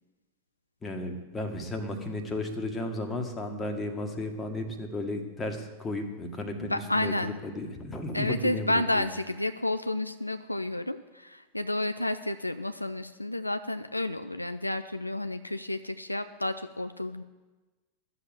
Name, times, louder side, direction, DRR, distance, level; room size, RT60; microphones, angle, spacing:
voice 1, 0.8-7.1 7.4-9.1, left 1 dB, 15° left, 3 dB, 1.7 m, -34 dB
voice 2, 6.6-7.4 8.1-17.2, left 1 dB, 85° left, 9 dB, 0.4 m, -31 dB
12.5 x 7.1 x 7.6 m, 1.2 s
figure-of-eight pair, 90°, 0 cm